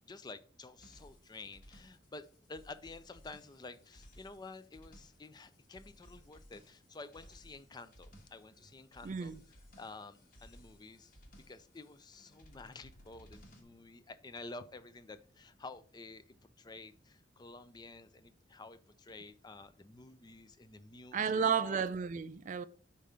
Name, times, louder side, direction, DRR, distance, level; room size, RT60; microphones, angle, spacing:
voice 1, 0.0-9.3 9.8-21.8, left 3 dB, 25° left, 0.4 m, -51 dB
sound 1, 0.8-13.6, equal, 50° left, 1.4 m, -60 dB
voice 2, 9.0-9.4 21.1-22.7, right 6 dB, 45° right, 0.4 m, -32 dB
5.2 x 4.4 x 4.9 m
head